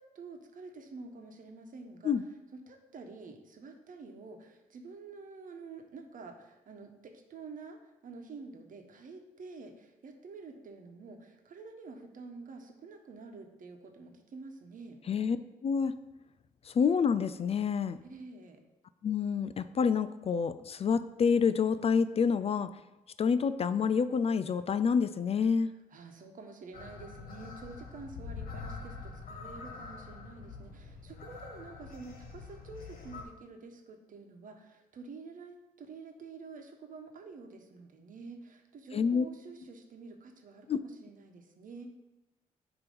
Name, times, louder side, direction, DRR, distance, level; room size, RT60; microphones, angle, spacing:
voice 1, 0.0-2.1 2.5-15.0 18.0-18.6 25.6-42.0, right 4 dB, 60° right, 4 dB, 1.1 m, -48 dB
voice 2, 15.6-15.9 16.7-18.0 19.0-22.7 23.2-25.7 38.9-39.3 40.7-40.8, left 6 dB, 40° left, 13 dB, 0.4 m, -28 dB
sound 1, 26.7-33.2, left 4 dB, 65° left, 1.5 m, -45 dB
9.0 x 3.0 x 5.3 m, 0.99 s
cardioid pair, 80°, 15 cm